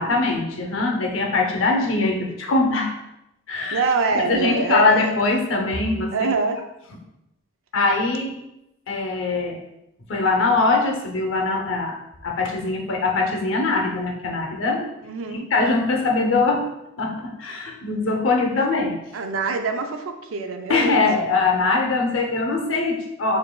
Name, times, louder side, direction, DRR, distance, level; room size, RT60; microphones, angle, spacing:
voice 1, 0.0-2.9 3.5-3.8 4.1-6.1 7.7-8.4 8.9-9.6 10.1-14.9 15.3-16.7 17.0-19.0 20.7-23.4, left 3 dB, 65° left, 2 dB, 0.6 m, -22 dB
voice 2, 3.7-5.1 6.1-6.6 15.0-15.5 18.6-18.7 19.1-21.4, right 4 dB, 75° right, 6 dB, 0.4 m, -25 dB
5.1 x 2.6 x 2.2 m, 0.87 s
head